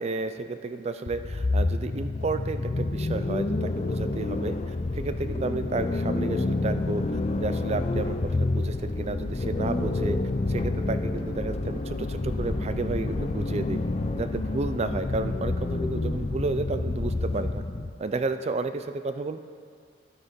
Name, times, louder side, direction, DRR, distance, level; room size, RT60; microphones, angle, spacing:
voice 1, 0.0-7.0 7.4-10.2 10.5-13.8 14.1-17.6 18.0-19.4, right 3 dB, 35° right, 11 dB, 0.4 m, -32 dB
sound 1, 1.1-17.9, left 2 dB, 35° left, 0.4 m, -28 dB
11.5 x 8.6 x 5.2 m, 2.2 s
head